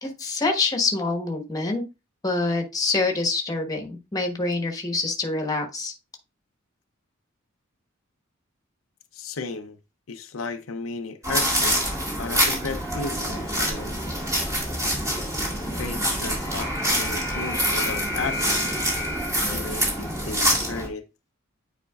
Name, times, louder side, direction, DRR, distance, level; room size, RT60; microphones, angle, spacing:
voice 1, 0.0-1.8 2.2-5.9, left 3 dB, 20° left, 1.2 m, -26 dB
voice 2, 9.1-9.8 10.1-11.8 12.2-14.0 15.7-18.7 19.5-21.1, left 4 dB, 80° left, 0.7 m, -34 dB
sound 1, 11.2-20.9, equal, 15° right, 1.9 m, -25 dB
9.2 x 4.3 x 2.4 m
head